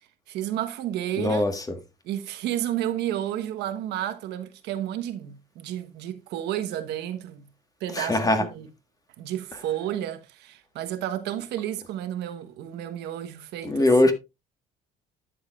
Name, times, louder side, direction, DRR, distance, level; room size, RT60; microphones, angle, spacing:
voice 1, 0.3-1.5 2.0-7.5 7.8-8.7 9.2-13.9, right 11 dB, 80° right, 1.2 m, -31 dB
voice 2, 1.2-1.7 7.9-8.5 13.6-14.1, left 2 dB, 20° left, 1.6 m, -21 dB
11.5 x 7.3 x 2.4 m
cardioid pair, 110°, 17 cm